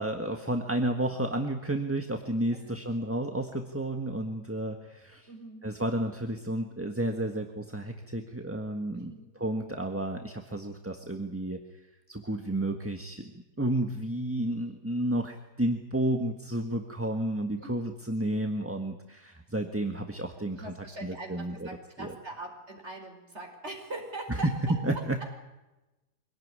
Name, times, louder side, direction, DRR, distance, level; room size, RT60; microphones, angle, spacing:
voice 1, 0.0-5.3 5.6-9.1 9.4-11.6 12.1-13.3 13.6-20.7 21.0-21.7 22.0-22.1 24.3-25.2, right 1 dB, 10° right, 4 dB, 1.4 m, -31 dB
voice 2, 5.3-5.7 8.9-9.3 17.6-17.7 20.5-24.5, right 2 dB, 40° right, 3 dB, 5.5 m, -42 dB
25.5 x 18.0 x 9.7 m, 1.0 s
omnidirectional pair, 1.8 m